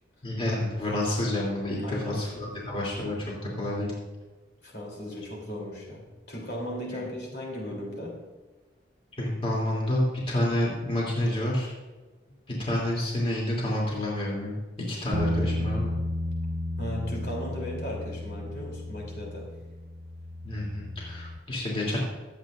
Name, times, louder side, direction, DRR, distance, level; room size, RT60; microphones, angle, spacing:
voice 1, 0.2-3.2 3.4-3.9 9.2-11.7 12.5-14.5 14.9-15.9 20.4-22.0, left 1 dB, 30° left, -4 dB, 3.1 m, -29 dB
voice 2, 1.8-2.3 4.6-8.2 16.8-19.6, equal, 60° left, -2 dB, 3.4 m, -36 dB
sound 1, 15.1-21.4, left 1 dB, 70° right, 1.2 m, -33 dB
24.0 x 8.6 x 2.6 m, 1.2 s
head